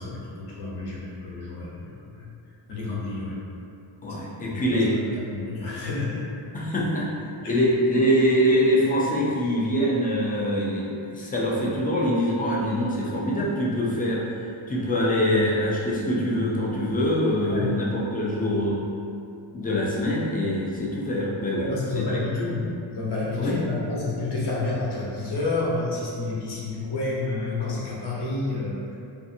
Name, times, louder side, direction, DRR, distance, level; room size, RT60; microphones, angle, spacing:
voice 1, 0.0-2.3 2.7-3.4 4.1-4.2 4.5-4.8 5.1-6.2 7.4-7.5 17.4-17.7 21.6-28.8, left 3 dB, 55° left, -6 dB, 0.8 m, -29 dB
voice 2, 4.0-4.9 6.5-7.1 7.4-14.3 14.7-18.8 19.5-22.0 23.4-23.6, equal, 20° left, -5 dB, 0.3 m, -24 dB
2.6 x 2.4 x 2.6 m, 2.5 s
cardioid pair, 120°, 49 cm